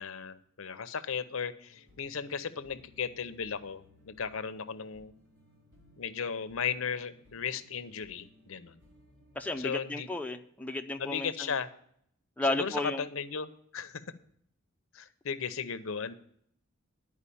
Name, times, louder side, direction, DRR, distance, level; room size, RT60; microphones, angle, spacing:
voice 1, 0.0-5.1 6.0-8.8 9.6-10.1 11.0-11.7 12.4-14.0 14.9-16.1, left 6 dB, 75° left, 12 dB, 0.7 m, -36 dB
sound 1, 1.7-9.6, left 1 dB, 60° right, 2.7 m, -62 dB
voice 2, 9.4-11.5 12.4-13.0, left 2 dB, 5° left, 4 dB, 0.5 m, -33 dB
11.0 x 4.9 x 8.4 m, 0.66 s
head